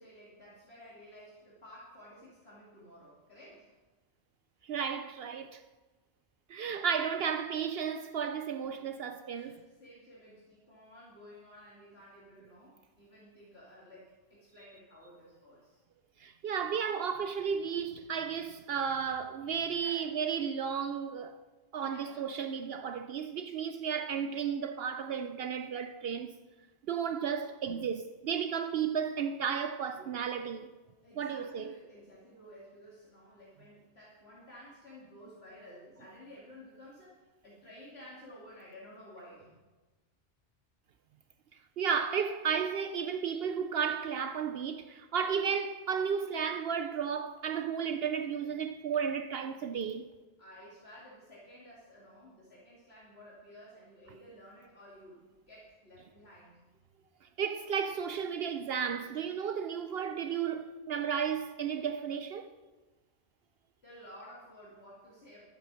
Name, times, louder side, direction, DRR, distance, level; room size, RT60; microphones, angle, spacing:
voice 1, 0.0-3.7 9.3-15.8 19.7-20.1 21.8-22.3 31.0-39.6 50.4-56.6 63.8-65.4, equal, 65° left, 2.7 m, -53 dB
voice 2, 4.6-5.6 6.5-9.6 16.2-21.4 21.7-26.3 26.9-30.7 31.2-31.8 41.8-50.1 57.4-62.5, right 7 dB, 65° right, 0.8 m, -33 dB
12.0 x 8.4 x 6.1 m
omnidirectional pair, 1.2 m